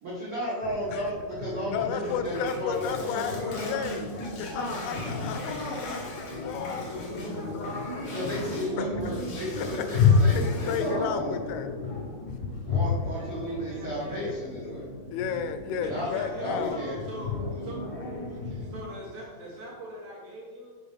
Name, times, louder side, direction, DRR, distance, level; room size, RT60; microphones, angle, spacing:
voice 1, 0.0-3.3 8.1-11.3 12.6-14.9 15.8-16.1 16.3-17.0, equal, 85° right, -7 dB, 1.2 m, -33 dB
sound 1, 0.6-18.9, left 4 dB, 45° left, 1.2 m, -31 dB
voice 2, 1.7-7.0 9.6-11.7 15.1-16.8, left 7 dB, 85° left, 8 dB, 2.4 m, -33 dB
sound 2, 2.0-8.7 9.0-11.0, left 1 dB, 65° left, 1.3 m, -39 dB
voice 3, 13.1-14.5 15.8-17.8 18.3-20.8, right 1 dB, 60° right, -4 dB, 1.7 m, -42 dB
6.0 x 5.3 x 3.5 m, 1.5 s
omnidirectional pair, 4.6 m